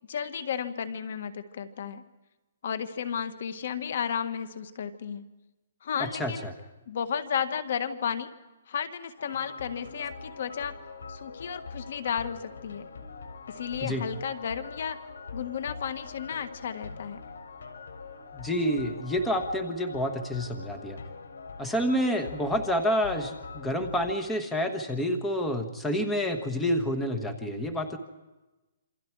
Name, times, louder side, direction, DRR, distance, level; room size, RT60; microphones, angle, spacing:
voice 1, 0.1-2.0 2.6-5.3 5.8-6.5 6.9-8.3 8.7-10.8 11.1-12.9 13.5-15.0 15.3-17.2, left 7 dB, 55° left, 10 dB, 1.6 m, -33 dB
voice 2, 6.0-6.5 13.8-14.0 18.3-21.0 21.6-28.0, equal, 5° left, 5 dB, 1.4 m, -28 dB
sound 1, 9.2-24.1, left 4 dB, 90° left, 4.1 m, -43 dB
28.0 x 25.5 x 4.8 m, 1.1 s
hypercardioid pair, 165°, 0 cm